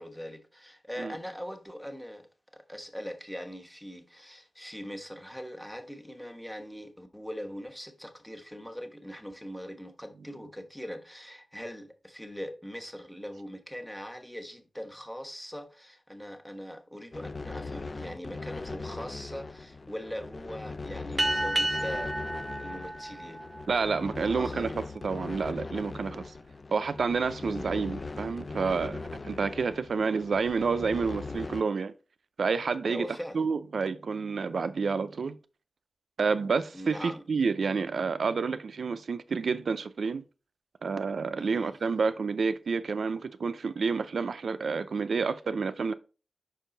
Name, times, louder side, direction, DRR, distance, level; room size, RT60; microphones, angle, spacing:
voice 1, 0.0-2.3 2.5-22.1 22.6-23.5 24.2-24.8 27.5-27.7 32.8-33.5 36.7-37.2 41.4-41.8, equal, ahead, 1.2 m, -41 dB
sound 1, 17.1-31.6, left 3 dB, 45° left, 0.5 m, -40 dB
sound 2, 21.2-24.1, right 1 dB, 30° right, 0.7 m, -31 dB
voice 2, 23.7-26.2 26.7-31.9 32.4-33.1 33.3-35.4 36.2-40.2 40.8-45.9, right 5 dB, 80° right, 0.5 m, -29 dB
5.6 x 4.6 x 3.9 m
cardioid pair, 65°, 0 cm